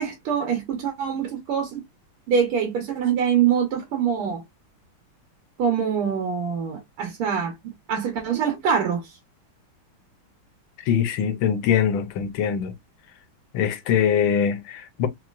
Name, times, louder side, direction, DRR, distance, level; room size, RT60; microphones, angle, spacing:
voice 1, 0.0-1.8 2.3-4.4 5.6-9.2, right 7 dB, 80° right, 2.0 m, -24 dB
voice 2, 10.8-12.7 13.5-15.1, left 8 dB, 75° left, 1.5 m, -23 dB
4.2 x 3.0 x 2.3 m
omnidirectional pair, 2.4 m